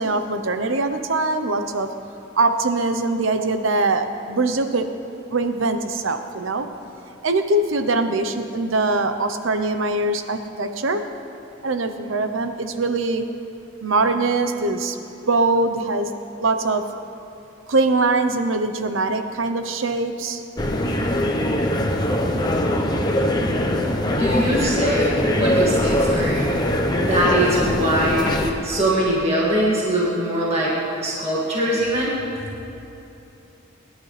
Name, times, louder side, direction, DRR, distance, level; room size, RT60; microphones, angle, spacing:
voice 1, 0.0-1.9 2.4-4.9 5.3-6.7 7.2-11.0 11.6-13.3 13.8-15.0 15.3-16.1 16.4-16.8 17.7-20.4, right 2 dB, 75° right, 8 dB, 0.9 m, -22 dB
sound 1, 20.6-28.5, left 1 dB, 20° left, 1.0 m, -21 dB
voice 2, 24.1-26.5 27.0-30.7 31.0-32.2, right 1 dB, 30° right, -6 dB, 2.1 m, -22 dB
23.0 x 11.0 x 3.4 m, 3.0 s
head